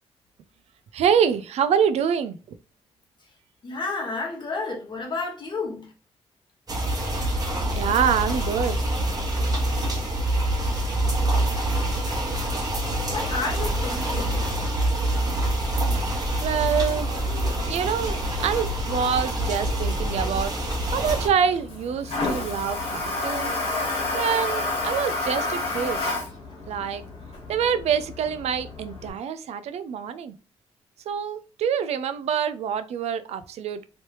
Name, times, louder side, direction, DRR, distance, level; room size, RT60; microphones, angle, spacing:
voice 1, 0.9-2.6 7.8-8.8 16.4-17.1 17.6-20.5 20.9-23.6 24.1-26.0 26.7-27.0 27.5-30.3 31.1-33.8, right 7 dB, 75° right, 12 dB, 0.4 m, -26 dB
voice 2, 3.6-5.9 12.1-12.3 13.1-14.7, left 3 dB, 45° left, 1 dB, 1.4 m, -32 dB
sound 1, 6.7-21.3, right 1 dB, 35° right, 1.2 m, -26 dB
Toilet flush, 16.9-29.1, left 2 dB, 65° left, 1.4 m, -31 dB
3.1 x 2.9 x 3.0 m, 0.34 s
cardioid pair, 80°, 11 cm